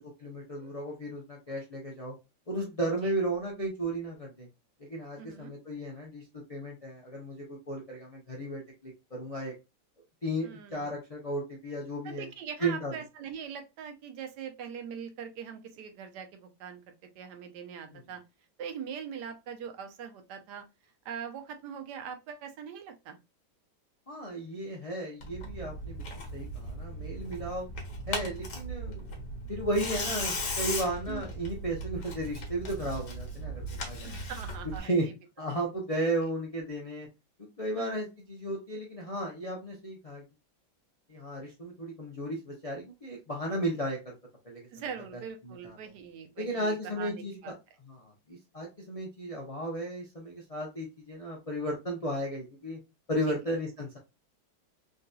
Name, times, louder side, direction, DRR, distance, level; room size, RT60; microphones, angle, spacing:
voice 1, 0.0-2.1 2.5-4.5 4.8-9.5 10.2-12.3 12.6-12.9 24.1-27.7 28.1-29.2 29.5-34.1 34.8-35.1 35.4-37.1 37.4-40.2 41.1-44.2 44.4-44.7 45.4-45.8 46.4-47.5 47.9-52.8 53.1-54.0, right 1 dB, 40° left, -2 dB, 0.5 m, -34 dB
voice 2, 5.2-5.5 10.4-10.9 12.0-18.2 18.6-20.6 21.0-23.2 31.1-31.2 34.0-35.1 35.9-36.1 37.7-38.0 44.7-47.5 53.3-53.4, right 7 dB, 80° right, 6 dB, 1.2 m, -42 dB
Tearing, 25.2-34.8, equal, 85° left, 1.6 m, -37 dB
3.8 x 2.6 x 2.3 m, 0.25 s
omnidirectional pair, 1.8 m